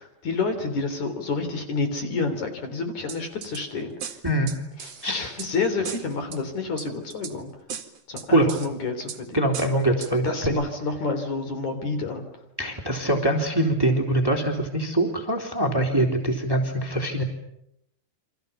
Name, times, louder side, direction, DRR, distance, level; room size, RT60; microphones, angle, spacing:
voice 1, 0.0-3.9 4.8-7.5 8.1-9.4 10.2-12.2, left 4 dB, 55° left, 7 dB, 4.6 m, -29 dB
sound 1, 3.1-3.6 4.0-5.5 5.8-6.4 6.8-7.3 7.7-8.7 9.1-9.2 9.5-10.1 10.4-10.5, right 8 dB, 50° right, 2.8 m, -37 dB
voice 2, 4.2-4.5 5.0-5.3 8.3-8.5 9.3-10.5 12.6-17.2, right 1 dB, 5° right, 3 dB, 3.1 m, -23 dB
29.0 x 25.5 x 7.1 m, 0.79 s
omnidirectional pair, 4.0 m